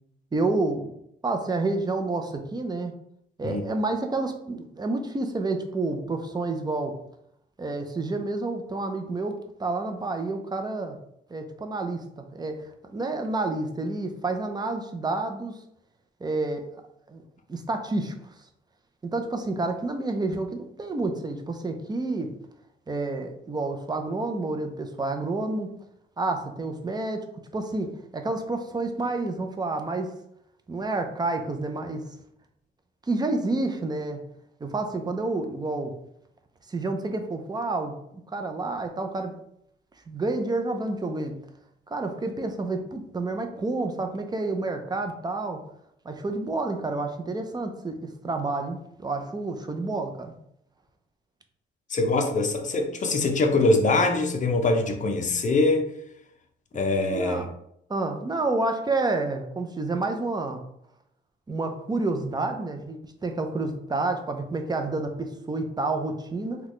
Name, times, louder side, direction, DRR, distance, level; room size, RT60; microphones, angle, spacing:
voice 1, 0.3-0.9 1.2-2.9 3.4-6.9 7.6-9.3 9.6-11.0 11.3-15.5 16.2-16.6 17.1-17.2 17.5-18.3 19.0-22.3 22.9-25.7 26.2-27.2 27.5-27.9 28.1-30.1 30.7-32.0 33.1-34.2 34.6-35.9 36.7-37.9 38.3-39.3 40.1-41.3 41.9-45.6 46.0-48.0 48.2-50.3 57.1-57.5 57.9-60.6 61.5-66.6, right 2 dB, 20° right, 5 dB, 0.5 m, -29 dB
voice 2, 51.9-55.9 56.7-57.5, left 2 dB, 40° left, 4 dB, 0.6 m, -23 dB
3.9 x 2.3 x 3.1 m, 0.75 s
cardioid pair, 90°, 20 cm